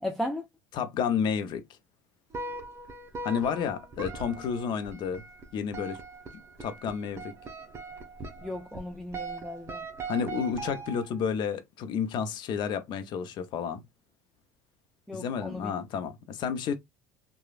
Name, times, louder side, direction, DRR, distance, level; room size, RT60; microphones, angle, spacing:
voice 1, 0.0-0.5 8.4-9.8 15.1-15.7, left 1 dB, 5° left, 0.5 m, -35 dB
voice 2, 0.7-1.6 3.2-5.2 5.5-6.0 6.6-7.3 10.1-13.8 15.1-16.7, left 7 dB, 55° left, 0.6 m, -31 dB
sound 1, 2.3-11.3, right 3 dB, 30° right, 0.8 m, -40 dB
3.1 x 2.2 x 2.4 m
hypercardioid pair, 80°, 9 cm